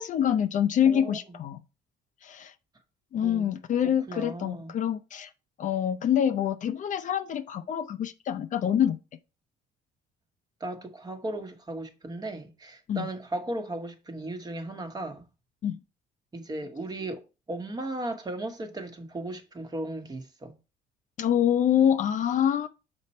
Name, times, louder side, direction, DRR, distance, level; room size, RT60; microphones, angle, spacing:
voice 1, 0.0-1.6 2.2-2.5 3.1-5.3 5.6-9.0 12.9-13.1 15.6-15.8 21.2-22.7, left 9 dB, 50° left, 0.5 m, -26 dB
voice 2, 0.9-1.2 3.2-3.5 4.1-4.7 10.6-15.2 16.3-20.5, right 2 dB, 25° right, 1.1 m, -36 dB
5.8 x 4.3 x 4.2 m
cardioid pair, 110°, 17 cm